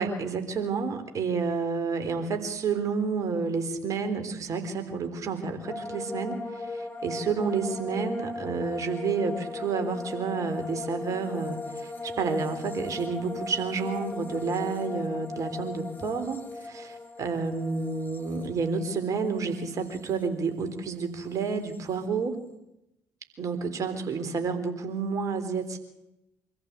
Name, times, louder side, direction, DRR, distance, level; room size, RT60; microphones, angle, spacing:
voice 1, 0.0-22.4 23.4-25.8, right 5 dB, 45° right, 7 dB, 3.7 m, -30 dB
sound 1, 5.7-20.9 21.1-21.8, left 3 dB, 25° left, 4.2 m, -38 dB
24.5 x 14.5 x 8.3 m, 0.88 s
hypercardioid pair, 50°, 7 cm